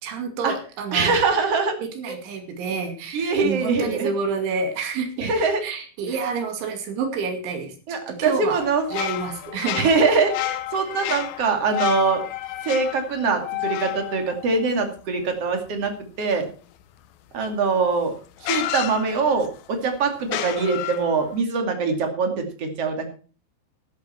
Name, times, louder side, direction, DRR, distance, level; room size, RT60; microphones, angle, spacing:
voice 1, 0.0-1.2 1.8-5.3 5.6-8.6 8.9-9.8, right 5 dB, 85° right, 6 dB, 4.8 m, -29 dB
voice 2, 0.9-1.7 2.1-2.2 3.1-4.1 5.2-5.6 7.9-8.9 9.7-12.2 12.6-15.9 16.2-16.5 17.3-18.1 18.4-23.1, right 4 dB, 40° right, 5 dB, 2.9 m, -23 dB
sound 1, 8.6-15.2 17.5-17.6 18.4-19.6 20.2-21.4, left 15 dB, 75° left, 2.3 m, -31 dB
13.5 x 12.0 x 4.5 m, 0.38 s
omnidirectional pair, 5.2 m